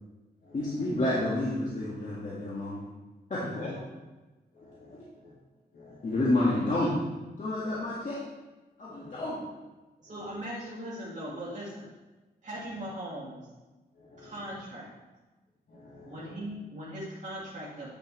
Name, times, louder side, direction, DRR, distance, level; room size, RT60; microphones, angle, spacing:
voice 1, 0.5-2.8 3.3-3.5 6.0-6.9 7.4-8.2 8.8-9.4, left 1 dB, 50° left, -8 dB, 1.8 m, -29 dB
voice 2, 4.5-5.3 5.7-6.0 8.9-9.2 14.1-14.3 15.7-16.4, left 2 dB, 80° left, -10 dB, 2.8 m, -46 dB
voice 3, 10.0-11.9 12.4-13.5 14.2-14.9 16.0-17.9, right 1 dB, 45° right, -8 dB, 2.2 m, -39 dB
9.8 x 6.6 x 3.3 m, 1.1 s
wide cardioid pair, 145°, 17 cm